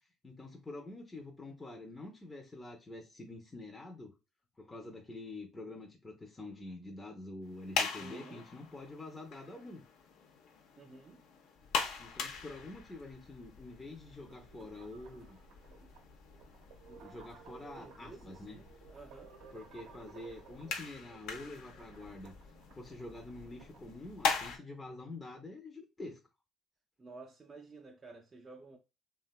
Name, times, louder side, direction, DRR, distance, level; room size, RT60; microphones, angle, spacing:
voice 1, 0.2-4.1 4.6-9.9 12.0-15.4 16.9-18.6 19.5-22.3 22.7-26.2, left 2 dB, 20° left, 0.5 m, -47 dB
sound 1, 7.4-24.6, left 5 dB, 70° left, 0.5 m, -42 dB
voice 2, 8.0-8.5 10.8-11.2 17.8-19.3 27.0-28.8, right 3 dB, 30° right, 0.4 m, -52 dB
sound 2, 14.3-23.9, right 6 dB, 75° right, 0.6 m, -57 dB
2.7 x 2.2 x 2.3 m
supercardioid pair, 70°, 0 cm